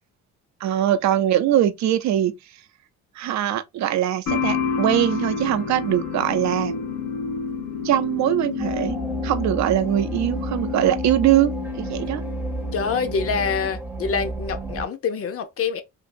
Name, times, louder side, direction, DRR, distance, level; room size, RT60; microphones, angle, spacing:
voice 1, 0.6-2.3 3.2-6.8 7.8-12.2, right 12 dB, 65° right, 0.5 m, -22 dB
sound 1, 4.3-13.8, left 6 dB, 90° left, 0.9 m, -29 dB
sound 2, 8.6-14.9, right 2 dB, 5° right, 0.6 m, -32 dB
voice 2, 12.7-15.8, left 5 dB, 50° left, 0.6 m, -26 dB
2.7 x 2.6 x 2.5 m
cardioid pair, 90°, 30 cm